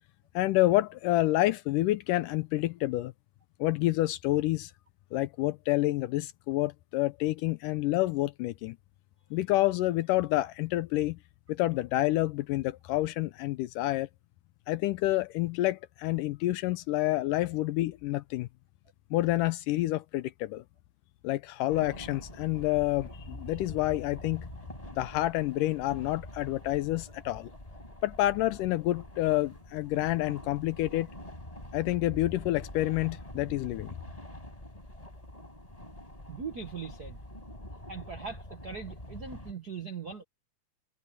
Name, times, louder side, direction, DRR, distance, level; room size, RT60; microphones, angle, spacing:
voice 1, 0.4-3.1 3.6-4.7 5.1-8.8 9.3-11.2 11.5-14.1 14.7-18.5 19.1-20.6 21.2-24.5 24.9-27.5 28.0-31.1 31.7-33.9, left 16 dB, 80° left, 2.2 m, -28 dB
sound 1, 21.7-39.5, left 1 dB, 10° left, 5.5 m, -45 dB
voice 2, 36.3-37.2 37.9-40.2, right 6 dB, 80° right, 0.8 m, -40 dB
omnidirectional pair, 3.9 m